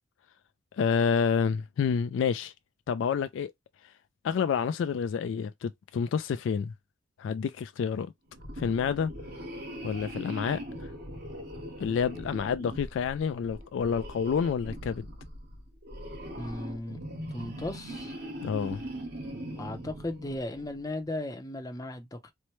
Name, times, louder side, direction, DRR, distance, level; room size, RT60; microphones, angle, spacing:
voice 1, 0.7-2.5 2.9-3.5 3.8-3.9 4.2-6.7 7.2-8.1 8.6-9.1 9.8-10.9 11.8-15.1 18.4-18.8, left 6 dB, 70° left, 0.3 m, -29 dB
sound 1, 8.3-20.8, equal, 55° right, 1.2 m, -41 dB
voice 2, 16.4-17.0 17.3-18.1 19.6-22.3, left 1 dB, 20° left, 0.6 m, -36 dB
4.3 x 2.1 x 3.1 m
head